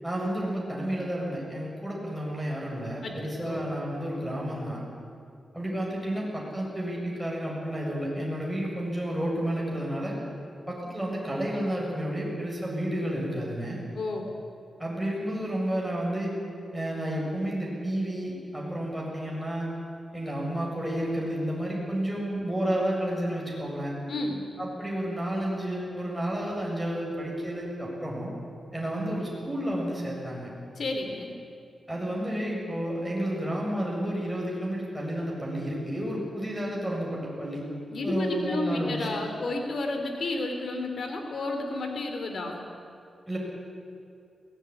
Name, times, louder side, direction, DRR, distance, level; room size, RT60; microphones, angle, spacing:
voice 1, 0.0-4.8 5.5-10.1 10.7-13.8 14.8-16.3 16.7-19.8 20.1-23.9 24.6-28.3 28.7-30.5 31.9-37.6 38.0-39.1 43.3-43.4, right 1 dB, ahead, -4 dB, 7.4 m, -31 dB
voice 2, 3.0-3.7 13.9-14.3 24.1-24.4 30.7-31.3 37.9-42.6, left 2 dB, 65° left, 4 dB, 3.3 m, -31 dB
22.0 x 17.5 x 9.9 m, 2.5 s
cardioid pair, 90°, 0 cm